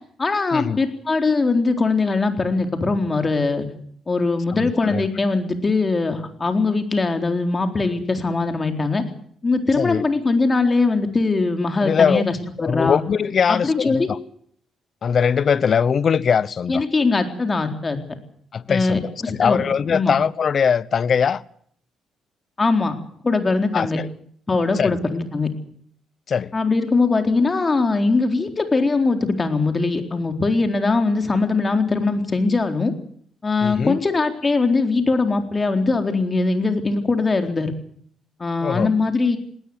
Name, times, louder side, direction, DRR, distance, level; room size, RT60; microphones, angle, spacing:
voice 1, 0.2-3.7 4.1-9.0 9.4-13.0 13.5-14.1 16.7-18.0 18.7-19.6 19.9-20.1 22.6-23.0 23.2-24.0 24.5-25.5 26.5-32.9 33.4-37.7 38.4-39.4, left 3 dB, 30° left, 4.0 m, -21 dB
voice 2, 4.5-5.1 9.8-10.0 11.8-12.2 12.6-14.2 15.0-16.8 18.5-21.4 23.7-24.1 24.8-25.0 26.3-26.5 33.6-34.0 38.6-38.9, left 7 dB, 50° left, 0.9 m, -21 dB
19.5 x 18.0 x 9.6 m
cardioid pair, 90°, 0 cm